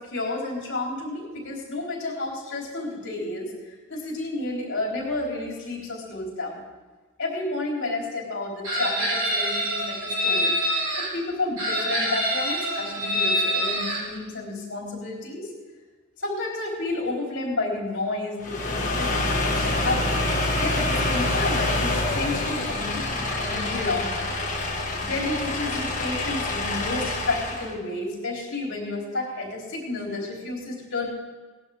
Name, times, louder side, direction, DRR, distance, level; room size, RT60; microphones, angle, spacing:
voice 1, 0.0-3.5 3.9-6.6 7.2-10.5 11.1-15.5 16.2-20.2 20.6-24.3 25.0-31.1, left 2 dB, 55° left, -3 dB, 4.2 m, -31 dB
Chicken rooster, 8.6-11.1 11.6-14.0, equal, 80° right, 5.3 m, -25 dB
sound 1, 18.4-27.7, left 2 dB, 35° left, 1.8 m, -26 dB
18.5 x 11.5 x 3.7 m, 1.3 s
head